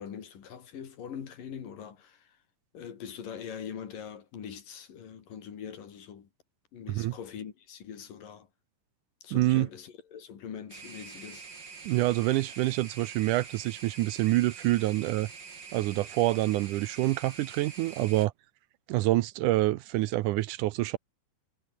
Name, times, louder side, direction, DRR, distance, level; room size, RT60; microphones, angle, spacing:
voice 1, 0.0-2.4 2.7-6.3 6.7-8.5 9.2-11.5, left 8 dB, 75° left, 4.4 m, -42 dB
voice 2, 9.3-9.7 11.9-15.3 15.7-18.3 18.9-21.0, right 17 dB, 80° right, 2.0 m, -27 dB
sound 1, 10.7-18.3, right 5 dB, 35° right, 3.1 m, -46 dB
omnidirectional pair, 3.9 m